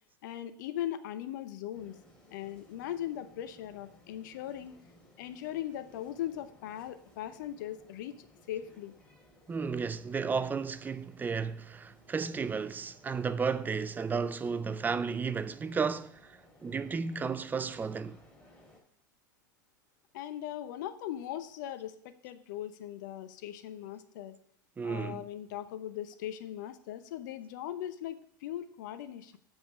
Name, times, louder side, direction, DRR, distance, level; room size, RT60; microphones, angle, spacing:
voice 1, 0.2-2.0 2.3-4.7 5.2-8.9 20.1-24.4 24.8-29.4, left 11 dB, 60° left, 0.7 m, -39 dB
sound 1, 1.7-18.8, left 1 dB, 10° left, 2.6 m, -60 dB
voice 2, 9.5-18.2 24.8-25.3, right 5 dB, 15° right, 0.4 m, -33 dB
7.3 x 5.1 x 5.0 m
hypercardioid pair, 90°, 11 cm